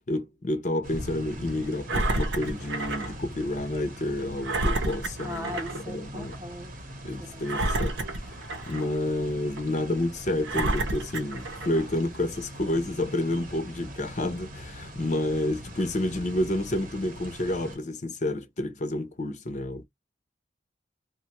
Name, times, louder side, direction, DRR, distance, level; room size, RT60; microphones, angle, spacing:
voice 1, 0.1-6.4 7.0-8.0 8.7-19.8, left 1 dB, 40° left, 0.5 m, -29 dB
sound 1, 0.8-17.8, equal, 45° right, 0.8 m, -42 dB
Engine, 1.9-3.1 3.6-3.7 4.4-5.8 6.2-6.4 7.4-9.0 9.6-9.7 10.4-11.9 12.6-12.7, right 2 dB, 85° right, 0.7 m, -30 dB
voice 2, 5.2-6.7 7.2-7.5, left 1 dB, 15° right, 0.5 m, -39 dB
3.0 x 2.3 x 2.9 m
head